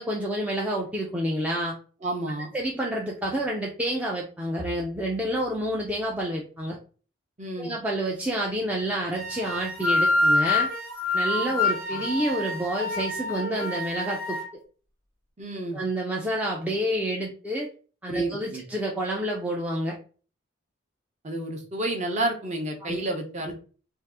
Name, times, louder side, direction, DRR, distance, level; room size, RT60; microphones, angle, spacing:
voice 1, 0.0-1.8 2.5-6.8 7.6-10.7 11.1-14.6 15.7-17.7 18.0-20.0 22.8-23.0 23.5-23.6, right 1 dB, 5° right, -3 dB, 0.4 m, -29 dB
voice 2, 2.0-2.5 7.4-7.7 15.4-15.8 18.1-18.6 21.2-23.5, right 2 dB, 35° right, 3 dB, 0.7 m, -30 dB
sound 1, 9.1-14.4, left 2 dB, 75° right, 1.1 m, -26 dB
2.7 x 2.4 x 3.5 m, 0.37 s
head